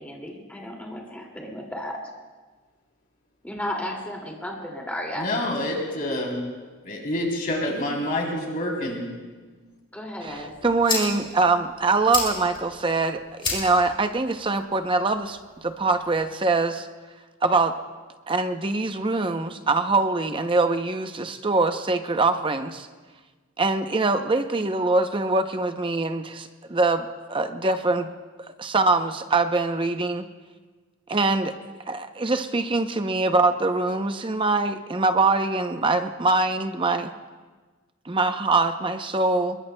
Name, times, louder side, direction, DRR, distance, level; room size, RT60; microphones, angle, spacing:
voice 1, 0.0-2.0 3.4-5.3 9.9-10.5, left 1 dB, 5° left, 0 dB, 2.3 m, -34 dB
voice 2, 5.2-6.4 6.8-9.1, left 1 dB, 40° left, -1 dB, 3.3 m, -27 dB
sound 1, 10.2-16.2, left 3 dB, 25° left, 4.7 m, -34 dB
voice 3, 10.2-15.4 15.6-16.9 17.4-17.7 18.3-22.9 23.6-28.1 28.6-30.3 31.1-31.5 31.9-37.1 38.1-39.6, right 3 dB, 25° right, 8 dB, 0.6 m, -23 dB
25.5 x 22.0 x 2.2 m, 1.4 s
head